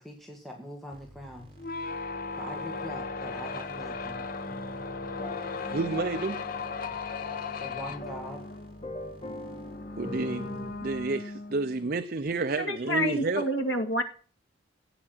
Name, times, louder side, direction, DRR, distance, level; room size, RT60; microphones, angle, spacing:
voice 1, 0.0-1.5 2.4-4.2 7.6-8.4, equal, ahead, 1.9 m, -42 dB
sound 1, 0.9-11.1, equal, 30° right, 2.9 m, -52 dB
sound 2, 1.6-11.9, left 4 dB, 45° left, 0.9 m, -37 dB
sound 3, 4.5-10.7, left 2 dB, 30° left, 2.3 m, -42 dB
voice 2, 5.6-6.4 10.0-10.5 10.8-13.4, right 3 dB, 50° right, 0.6 m, -30 dB
voice 3, 12.6-14.0, equal, 75° left, 2.1 m, -28 dB
15.5 x 8.7 x 6.1 m
head